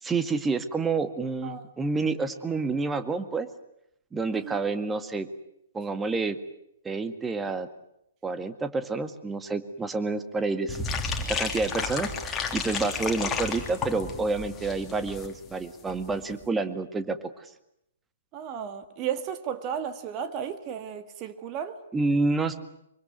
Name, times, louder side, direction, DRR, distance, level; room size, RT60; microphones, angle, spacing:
voice 1, 0.0-3.5 4.1-5.3 5.7-6.4 6.8-7.7 8.2-10.8 11.3-17.5 21.9-22.6, right 3 dB, 10° right, 1.9 m, -29 dB
sound 1, 10.7-15.3 15.5-15.6 15.9-16.1 16.4-16.5, left 5 dB, 15° left, 3.3 m, -32 dB
voice 2, 18.3-21.8, right 8 dB, 30° right, 2.1 m, -34 dB
25.0 x 24.0 x 9.5 m
figure-of-eight pair, 120°, 0 cm